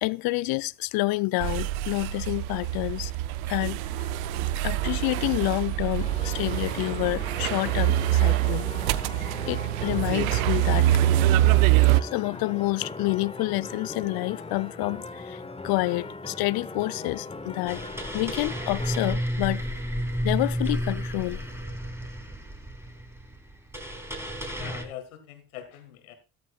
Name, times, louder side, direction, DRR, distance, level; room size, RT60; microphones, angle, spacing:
voice 1, 0.0-3.1 3.5-3.8 4.6-8.7 9.2-11.0 12.0-17.8 18.1-19.6 20.2-21.4, left 22 dB, 60° left, 0.6 m, -28 dB
sound 1, 1.4-12.0, right 15 dB, 75° right, 0.6 m, -24 dB
sound 2, 6.0-19.2, left 3 dB, 15° left, 1.0 m, -39 dB
sound 3, 17.7-24.8, equal, 5° right, 2.9 m, -32 dB
voice 2, 24.6-26.2, left 10 dB, 80° left, 1.9 m, -42 dB
14.0 x 13.0 x 2.4 m
hypercardioid pair, 55°, 42 cm